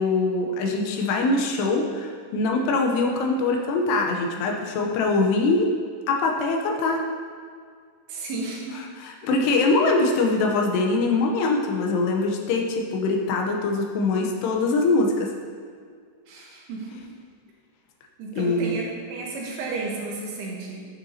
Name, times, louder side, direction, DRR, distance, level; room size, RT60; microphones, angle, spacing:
voice 1, 0.0-5.7 6.1-7.0 9.2-15.3 18.3-18.8, left 3 dB, 80° left, 1 dB, 2.9 m, -23 dB
voice 2, 8.1-8.8 16.3-17.1 18.2-20.9, right 3 dB, 75° right, -2 dB, 3.2 m, -33 dB
11.0 x 6.9 x 2.8 m, 2.1 s
omnidirectional pair, 4.8 m